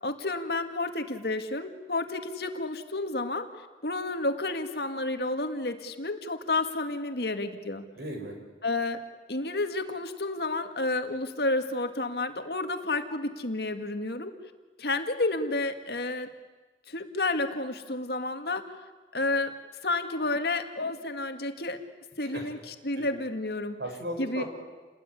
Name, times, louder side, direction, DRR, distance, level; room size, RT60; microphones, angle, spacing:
voice 1, 0.0-3.5 3.8-7.9 8.6-9.0 9.3-14.3 14.8-16.3 16.9-18.7 19.1-19.5 19.8-21.8 22.2-23.8 24.2-24.4, left 2 dB, 60° left, 7 dB, 2.0 m, -30 dB
voice 2, 8.0-8.4 22.3-22.5 23.0-23.2 23.8-24.4, equal, 65° right, 3 dB, 6.3 m, -36 dB
29.5 x 20.0 x 9.9 m, 1.3 s
head